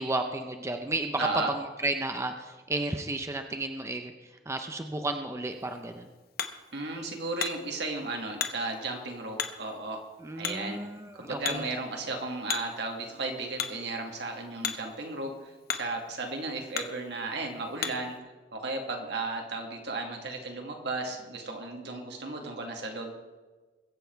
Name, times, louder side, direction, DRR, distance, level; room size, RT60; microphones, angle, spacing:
voice 1, 0.0-6.1 10.2-11.7, right 2 dB, 15° right, 6 dB, 0.6 m, -33 dB
voice 2, 1.2-1.5 6.7-10.0 10.4-10.8 11.1-18.2 18.5-23.1, right 3 dB, 70° right, 2 dB, 2.2 m, -34 dB
Hammer, 5.5-18.2, left 8 dB, 60° left, 0.9 m, -39 dB
22.5 x 7.6 x 4.6 m, 1.3 s
head